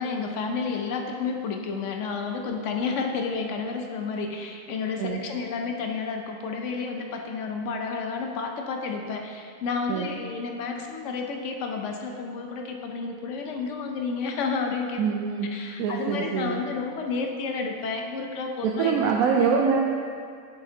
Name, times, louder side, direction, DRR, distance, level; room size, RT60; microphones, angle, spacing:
voice 1, 0.0-15.0 15.5-19.0, left 4 dB, 65° left, 3 dB, 0.9 m, -31 dB
voice 2, 15.0-15.5 15.8-16.6 18.6-19.8, right 6 dB, 85° right, 0 dB, 1.1 m, -24 dB
7.7 x 6.5 x 2.7 m, 2.2 s
omnidirectional pair, 1.5 m